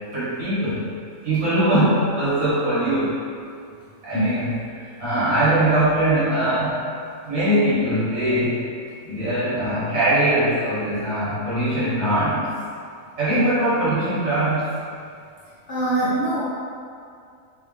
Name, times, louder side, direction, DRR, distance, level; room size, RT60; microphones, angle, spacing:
voice 1, 0.1-0.9 1.2-3.2 4.0-6.8 7.2-8.7 9.0-12.5 13.2-14.7, right 1 dB, 70° right, -12 dB, 1.9 m, -21 dB
voice 2, 15.7-16.4, equal, 55° left, -10 dB, 0.9 m, -22 dB
4.7 x 2.8 x 3.3 m, 2.4 s
omnidirectional pair, 1.4 m